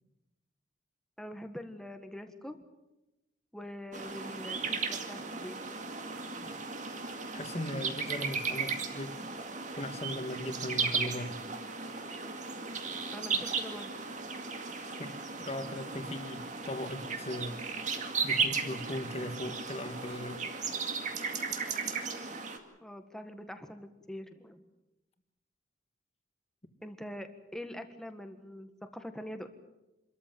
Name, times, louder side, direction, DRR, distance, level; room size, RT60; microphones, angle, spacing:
voice 1, 1.2-2.6 3.5-5.6 8.8-8.9 13.1-14.1 22.8-24.6 26.8-29.5, equal, 5° left, 7 dB, 1.6 m, -44 dB
sound 1, 3.9-22.6, right 5 dB, 40° right, 2.2 m, -36 dB
voice 2, 7.3-9.2 9.8-11.4 15.0-17.6 18.2-20.4, left 1 dB, 35° left, 7 dB, 1.9 m, -38 dB
26.5 x 13.5 x 9.2 m, 1.0 s
head